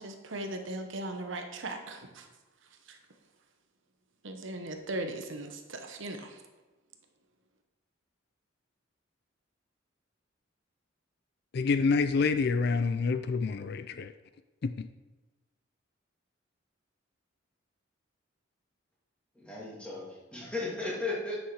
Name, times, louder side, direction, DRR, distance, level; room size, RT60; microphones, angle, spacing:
voice 1, 0.0-2.3 2.9-3.0 4.2-6.4, right 2 dB, 70° right, 1.0 m, -38 dB
voice 2, 11.5-14.1 14.6-14.9, left 4 dB, 50° left, 0.3 m, -27 dB
voice 3, 19.3-21.4, left 2 dB, 5° left, 2.2 m, -35 dB
9.5 x 6.4 x 4.7 m
head